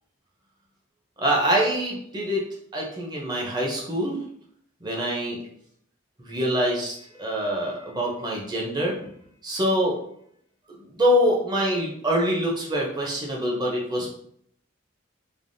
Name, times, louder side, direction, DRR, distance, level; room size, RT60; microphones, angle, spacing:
voice 1, 1.2-2.5 2.7-4.2 4.8-5.4 6.2-9.2 9.4-10.0 10.7-14.1, equal, 20° right, -3 dB, 0.6 m, -25 dB
3.3 x 2.1 x 2.6 m, 0.68 s
head